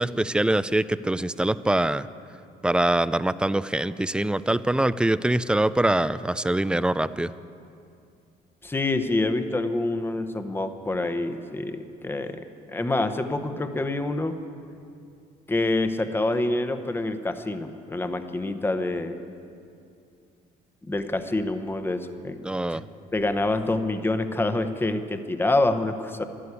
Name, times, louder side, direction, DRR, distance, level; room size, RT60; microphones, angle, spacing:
voice 1, 0.0-2.1 2.6-7.3 22.4-22.8, right 1 dB, 5° right, 15 dB, 0.3 m, -24 dB
voice 2, 8.6-12.5 12.7-14.4 15.5-19.2 20.9-22.4 22.7-22.8 23.1-26.2, left 2 dB, 15° left, 8 dB, 0.9 m, -26 dB
12.5 x 11.5 x 9.7 m, 2.5 s
cardioid pair, 110°, 17 cm